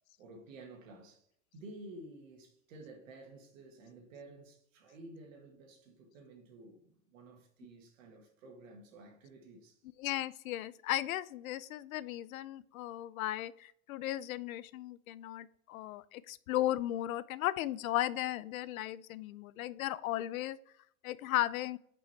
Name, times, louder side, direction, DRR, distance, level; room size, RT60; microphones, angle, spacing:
voice 1, 0.2-1.3 1.5-9.8, right 2 dB, 70° right, 1.9 m, -52 dB
voice 2, 10.0-20.6 21.0-21.8, left 14 dB, 80° left, 0.6 m, -36 dB
5.9 x 5.4 x 4.6 m
supercardioid pair, 145°, 41 cm